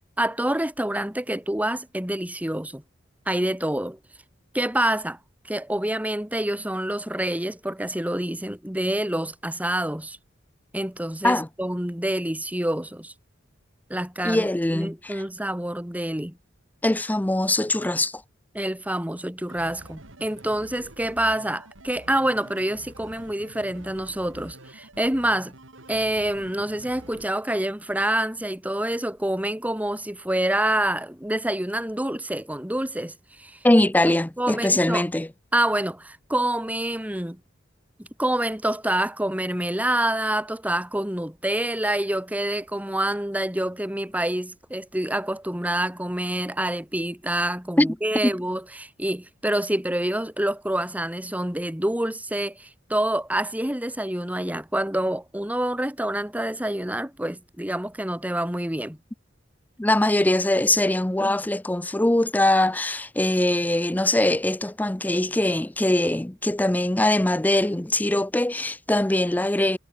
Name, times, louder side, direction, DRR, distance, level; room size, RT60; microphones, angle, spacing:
voice 1, 0.2-2.8 3.2-4.0 4.5-5.2 5.4-10.2 10.7-13.1 13.9-14.5 14.7-16.4 18.5-25.5 25.9-33.6 34.4-35.1 35.5-37.4 38.0-59.0, right 1 dB, 10° right, 1.7 m, -27 dB
voice 2, 14.2-15.2 16.8-18.2 33.6-35.3 47.8-47.9 48.2-48.3 59.8-69.8, left 1 dB, 10° left, 0.5 m, -22 dB
sound 1, 19.5-27.3, right 1 dB, 85° right, 3.7 m, -47 dB
head